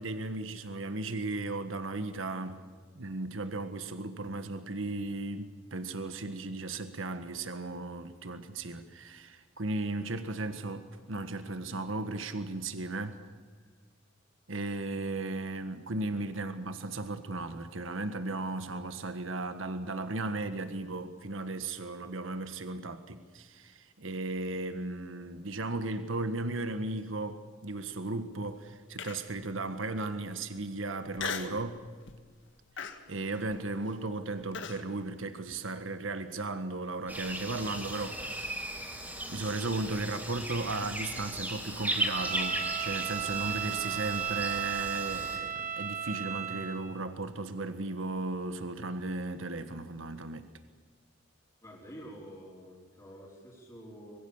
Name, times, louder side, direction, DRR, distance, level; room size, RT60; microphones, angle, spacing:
voice 1, 0.0-2.6 2.9-13.1 14.5-31.8 33.1-38.7 39.3-50.5, right 2 dB, 75° right, 1.5 m, -36 dB
Human voice, 29.0-29.4 30.0-30.1 31.2-31.6 32.1-32.3 32.8-34.8, left 6 dB, 65° left, 1.8 m, -38 dB
sound 1, 37.1-45.4, right 1 dB, 10° right, 4.3 m, -37 dB
Bowed string instrument, 42.0-46.8, right 9 dB, 35° right, 2.7 m, -35 dB
voice 2, 51.6-54.2, equal, 20° left, 4.6 m, -48 dB
25.0 x 22.0 x 7.2 m
head